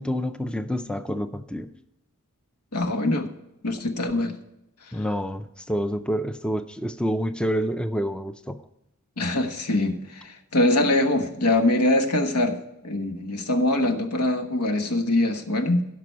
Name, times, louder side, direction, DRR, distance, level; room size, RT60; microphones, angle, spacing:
voice 1, 0.0-1.7 4.9-8.6, equal, 5° left, 0.4 m, -28 dB
voice 2, 2.7-3.3 3.6-4.3 9.2-12.6 12.8-15.9, left 1 dB, 90° left, 1.4 m, -23 dB
16.0 x 6.0 x 4.5 m
head